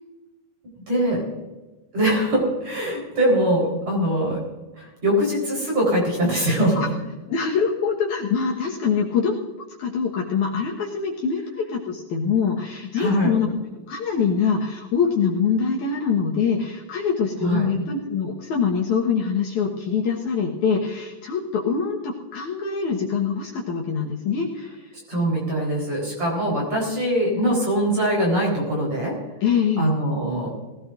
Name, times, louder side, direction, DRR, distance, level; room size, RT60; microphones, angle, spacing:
voice 1, 0.9-1.2 1.9-4.4 4.8-6.8 13.0-13.4 17.4-17.7 25.1-29.2 29.8-30.5, right 1 dB, 50° right, -3 dB, 5.4 m, -22 dB
voice 2, 7.3-9.4 9.8-24.7 29.4-29.9, left 6 dB, 65° left, -2 dB, 2.6 m, -24 dB
20.5 x 16.5 x 2.6 m, 1.2 s
omnidirectional pair, 3.9 m